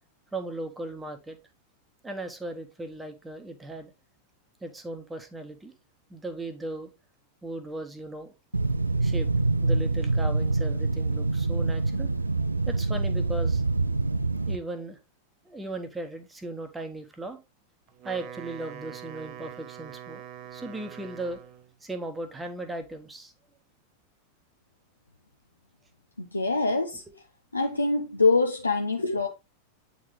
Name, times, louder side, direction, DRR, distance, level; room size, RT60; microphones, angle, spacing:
voice 1, 0.3-1.4 2.0-3.9 4.6-5.7 6.1-6.9 7.4-8.3 9.0-9.3 9.6-12.1 12.7-13.6 14.5-15.0 15.4-17.4 18.0-20.2 20.5-21.4 21.8-23.3, right 2 dB, 10° right, 1.1 m, -37 dB
sound 1, 8.5-14.6, right 3 dB, 80° right, 0.4 m, -26 dB
Wind instrument woodwind instrument, 17.9-21.7, right 9 dB, 40° right, 0.7 m, -43 dB
voice 2, 26.2-27.0 27.5-29.3, left 3 dB, 80° left, 0.6 m, -24 dB
8.5 x 4.0 x 3.1 m
figure-of-eight pair, 90°, 0 cm